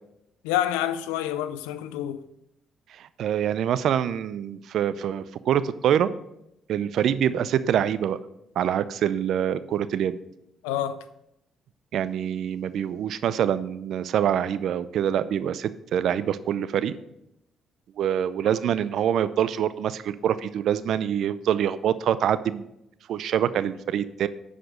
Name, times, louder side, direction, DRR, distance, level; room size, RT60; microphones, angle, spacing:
voice 1, 0.4-2.2 10.6-11.0, left 12 dB, 90° left, 0.5 m, -27 dB
voice 2, 2.9-6.1 6.7-8.2 8.6-10.1 11.9-17.0 18.0-22.7 23.1-24.3, right 9 dB, 70° right, 0.5 m, -25 dB
11.0 x 5.0 x 5.1 m
hypercardioid pair, 55°, 0 cm